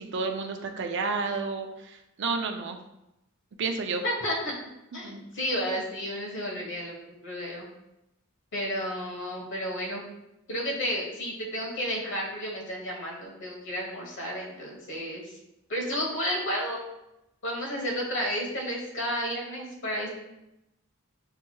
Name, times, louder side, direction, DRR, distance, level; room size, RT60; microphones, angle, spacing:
voice 1, 0.0-2.8 3.6-4.0 5.0-5.2, right 4 dB, 60° right, 4 dB, 0.5 m, -31 dB
voice 2, 4.0-4.5 4.9-6.9 7.2-7.7 8.5-10.0 10.5-15.4 15.7-16.8 17.4-20.1, equal, 60° left, -2 dB, 1.3 m, -32 dB
6.4 x 3.0 x 2.3 m, 0.88 s
head